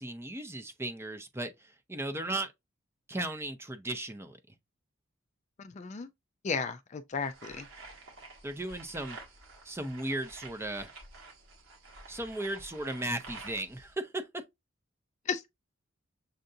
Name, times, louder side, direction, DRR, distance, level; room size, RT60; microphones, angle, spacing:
voice 1, 0.0-1.5 1.9-2.5 3.1-4.4 8.4-9.2 9.6-10.9 12.1-14.3, right 1 dB, 10° right, 0.6 m, -36 dB
voice 2, 5.6-6.1 6.4-7.7 15.3-15.5, left 5 dB, 35° left, 0.4 m, -34 dB
sound 1, 7.2-13.9, right 3 dB, 80° right, 1.6 m, -50 dB
6.6 x 2.5 x 2.6 m
head